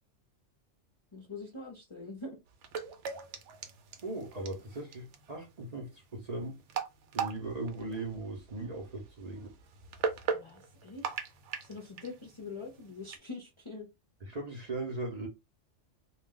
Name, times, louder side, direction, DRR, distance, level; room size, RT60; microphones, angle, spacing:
voice 1, 1.1-2.4 10.3-11.2 11.6-13.9, left 3 dB, 35° left, 0.5 m, -44 dB
sound 1, 2.5-13.2, right 6 dB, 80° right, 0.9 m, -40 dB
voice 2, 4.0-6.6 7.1-9.5 14.2-15.3, right 2 dB, 40° right, 0.7 m, -38 dB
2.4 x 2.2 x 3.5 m
omnidirectional pair, 1.2 m